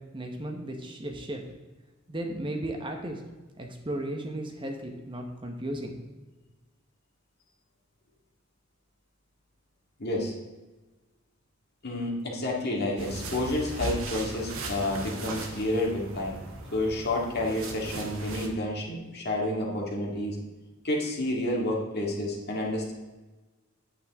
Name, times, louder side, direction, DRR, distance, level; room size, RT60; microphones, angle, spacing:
voice 1, 0.1-1.4 2.1-3.2 3.6-5.9, right 1 dB, 25° right, 3 dB, 1.0 m, -35 dB
voice 2, 10.0-10.3 11.8-16.4 16.7-20.4 20.8-22.9, left 1 dB, 50° left, -1 dB, 2.0 m, -30 dB
sound 1, 13.0-18.5, right 2 dB, 90° right, 1.3 m, -38 dB
8.9 x 8.8 x 3.6 m, 1.2 s
head